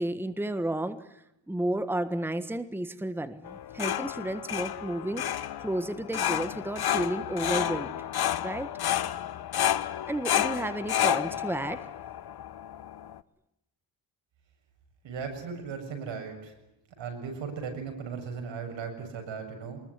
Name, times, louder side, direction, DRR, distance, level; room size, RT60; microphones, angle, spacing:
voice 1, 0.0-5.2 5.6-7.9 8.4-8.7 10.1-11.8, right 1 dB, 5° right, 11 dB, 1.5 m, -32 dB
sound 1, 3.4-13.2, left 11 dB, 60° left, 1.0 m, -31 dB
voice 2, 15.0-16.5 17.0-19.8, right 6 dB, 85° right, 5 dB, 7.3 m, -37 dB
24.5 x 21.0 x 9.9 m, 0.85 s
cardioid pair, 115°, 43 cm